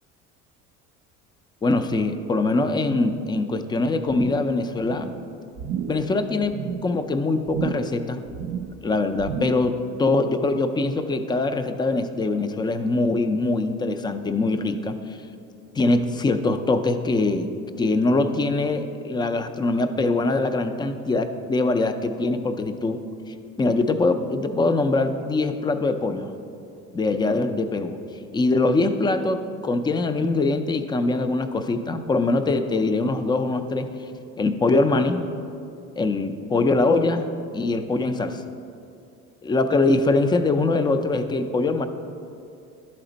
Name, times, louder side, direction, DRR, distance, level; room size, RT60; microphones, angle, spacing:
voice 1, 1.6-5.1 5.9-8.2 8.8-15.2 15.8-17.5 17.8-23.0 23.6-26.3 26.9-28.0 28.3-33.9 34.4-35.2 36.0-37.3 37.5-38.4 39.4-41.9, left 2 dB, 15° left, 9 dB, 0.4 m, -23 dB
sound 1, 4.1-4.6 4.8-5.2 5.6-6.1 6.4-6.9 7.5-8.0 8.3-8.8 9.2-9.7 10.1-10.2, right 7 dB, 60° right, 0.5 m, -32 dB
11.0 x 4.3 x 3.9 m, 2.5 s
supercardioid pair, 90°, 33 cm